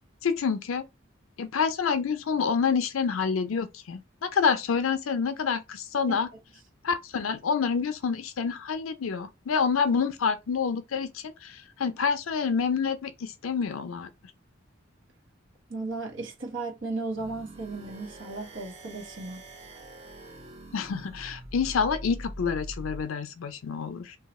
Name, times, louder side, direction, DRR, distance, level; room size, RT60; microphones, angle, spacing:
voice 1, 0.2-0.9 1.4-6.3 6.8-14.1 20.7-24.2, left 6 dB, 85° left, 0.5 m, -28 dB
voice 2, 15.7-19.4, right 3 dB, 65° right, 1.1 m, -35 dB
sound 1, 17.1-23.1, right 1 dB, 30° right, 0.7 m, -43 dB
2.7 x 2.3 x 4.1 m
head